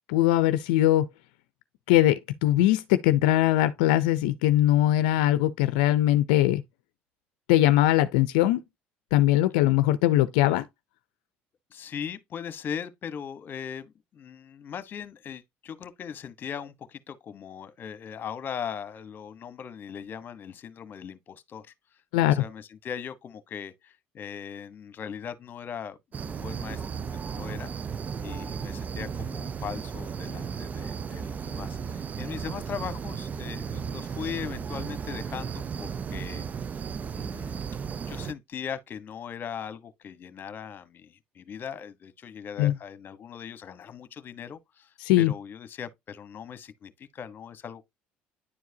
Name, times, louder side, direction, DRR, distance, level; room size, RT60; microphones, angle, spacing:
voice 1, 0.1-1.1 1.9-6.6 7.5-8.6 9.1-10.7 22.1-22.4 42.6-42.7 45.0-45.3, left 14 dB, 85° left, 0.5 m, -21 dB
voice 2, 11.7-22.0 22.4-26.8 27.1-27.7 28.2-36.4 37.1-37.6 38.1-47.9, left 7 dB, 45° left, 1.2 m, -39 dB
sound 1, 26.1-38.3, right 6 dB, 35° right, 0.5 m, -35 dB
10.0 x 4.6 x 2.8 m
supercardioid pair, 85°, 5 cm